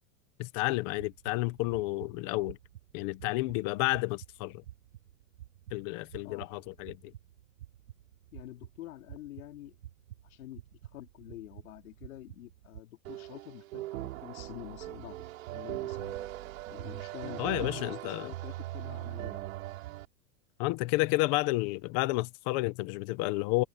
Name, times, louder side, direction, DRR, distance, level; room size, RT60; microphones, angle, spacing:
voice 1, 0.4-2.6 2.9-4.6 5.7-7.1 17.4-18.3 20.6-23.6, left 21 dB, 25° left, 0.6 m, -31 dB
sound 1, 0.7-12.8, right 12 dB, 90° right, 5.5 m, -51 dB
voice 2, 8.3-9.8 10.2-10.6 10.9-15.2 15.5-16.2 16.7-19.5, left 15 dB, 70° left, 4.1 m, -47 dB
sound 2, 13.0-20.0, right 16 dB, 60° right, 3.9 m, -40 dB
supercardioid pair, 170°, 45 cm